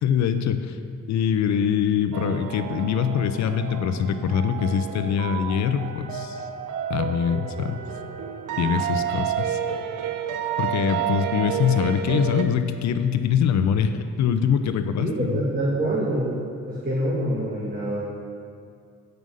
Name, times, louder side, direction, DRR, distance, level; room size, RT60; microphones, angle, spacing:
voice 1, 0.0-0.8 1.1-6.5 6.9-7.8 8.6-9.6 10.6-15.4, left 7 dB, 65° left, 9 dB, 0.6 m, -23 dB
sound 1, 2.1-12.4, right 9 dB, 80° right, 0.7 m, -30 dB
voice 2, 15.0-16.4 16.6-18.0, right 1 dB, 30° right, -5 dB, 1.5 m, -26 dB
8.0 x 5.4 x 6.3 m, 2.3 s
cardioid pair, 90°, 30 cm